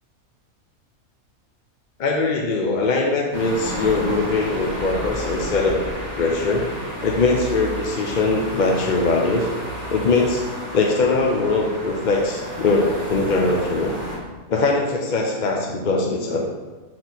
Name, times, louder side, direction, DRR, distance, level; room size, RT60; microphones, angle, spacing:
voice 1, 2.0-5.8 6.2-6.7 7.0-9.5 9.9-10.5 10.7-13.9 14.5-16.4, left 3 dB, 50° left, 0 dB, 0.6 m, -21 dB
sound 1, 3.3-14.2, equal, 25° left, 2.4 m, -31 dB
6.7 x 4.3 x 4.1 m, 1.3 s
omnidirectional pair, 1.5 m